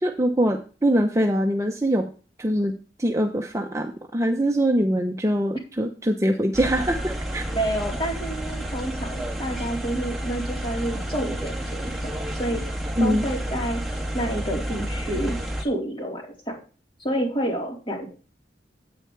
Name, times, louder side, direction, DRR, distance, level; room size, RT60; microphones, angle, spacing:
voice 1, 0.0-2.1 2.4-2.7 3.0-7.4 13.0-13.3, equal, 15° right, 3 dB, 0.8 m, -23 dB
sound 1, 6.5-15.6, right 1 dB, ahead, 1.7 m, -30 dB
voice 2, 7.5-11.9 12.4-12.6 13.0-13.8 14.1-16.6 17.0-18.1, right 1 dB, 30° left, -1 dB, 3.9 m, -29 dB
9.7 x 8.8 x 3.4 m, 0.36 s
head